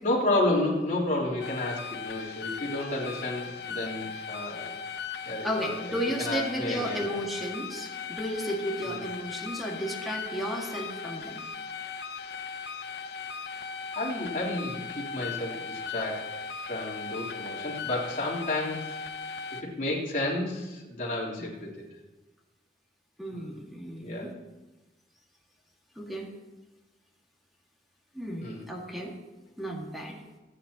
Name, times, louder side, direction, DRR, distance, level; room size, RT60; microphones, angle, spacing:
voice 1, 0.0-4.8 5.2-7.2 8.8-9.0 14.0-16.2 16.6-19.0 19.5-21.8 23.3-23.6 24.0-24.3 28.4-28.6, left 1 dB, 45° left, -5 dB, 3.7 m, -31 dB
sound 1, 1.4-19.6, left 5 dB, 65° left, 0.9 m, -38 dB
voice 2, 5.4-11.4 21.4-21.5 23.2-24.3 26.0-26.3 28.1-29.2 29.6-30.2, equal, ahead, -1 dB, 2.0 m, -33 dB
24.5 x 9.4 x 3.0 m, 1.1 s
head